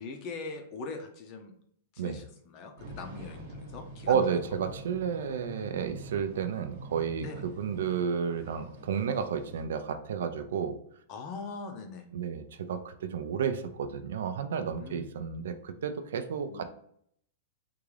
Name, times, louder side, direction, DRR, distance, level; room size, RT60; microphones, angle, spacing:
voice 1, 0.0-1.5 1.9-4.2 7.2-7.6 11.1-12.1 14.8-15.0 16.5-16.6, left 4 dB, 35° left, 5 dB, 0.5 m, -41 dB
sound 1, 2.8-9.6, right 1 dB, 55° right, 1.0 m, -46 dB
voice 2, 4.1-10.8 12.1-16.6, right 7 dB, 80° right, 8 dB, 0.4 m, -31 dB
3.6 x 2.4 x 3.2 m, 0.68 s
supercardioid pair, 160°, 0 cm